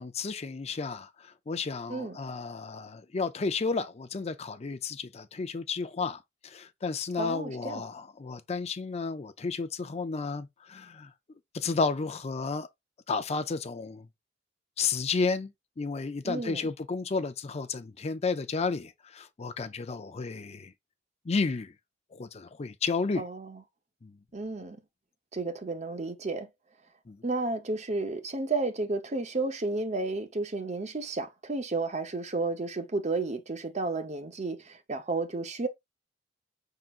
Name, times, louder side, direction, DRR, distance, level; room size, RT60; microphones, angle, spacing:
voice 1, 0.0-11.1 11.5-12.7 13.1-14.1 14.8-15.5 15.8-20.7 21.2-21.7 22.1-23.2 24.0-24.2 27.1-27.2, left 4 dB, 35° left, 0.5 m, -32 dB
voice 2, 7.2-7.8 16.2-16.7 23.2-23.6 24.3-24.8 25.3-26.5 27.2-35.7, right 3 dB, 40° right, 0.8 m, -32 dB
5.8 x 3.8 x 2.4 m
head